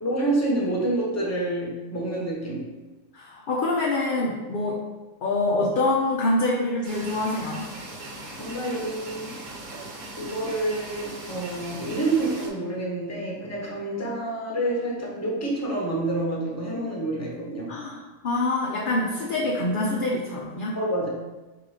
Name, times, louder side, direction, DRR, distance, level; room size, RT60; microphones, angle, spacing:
voice 1, 0.0-2.6 8.4-9.4 10.2-17.7 20.7-21.1, right 2 dB, 15° left, -3 dB, 0.8 m, -28 dB
voice 2, 3.1-4.8 5.2-7.7 17.7-20.8, left 2 dB, 60° left, -3 dB, 0.5 m, -25 dB
sound 1, 6.8-12.5, right 2 dB, 90° right, 1.3 m, -39 dB
3.8 x 2.9 x 4.7 m, 1.2 s
omnidirectional pair, 1.4 m